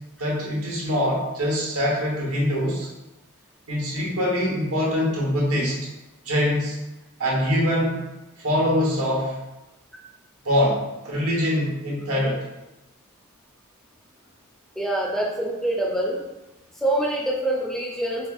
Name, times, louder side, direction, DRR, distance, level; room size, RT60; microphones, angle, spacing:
voice 1, 0.2-2.9 3.7-5.8 6.2-6.8 7.2-8.0 8.4-9.4 10.4-12.4, equal, 75° right, -4 dB, 1.1 m, -23 dB
voice 2, 14.8-16.2 16.8-18.3, right 1 dB, ahead, -2 dB, 0.5 m, -25 dB
4.3 x 2.8 x 2.4 m, 0.99 s
head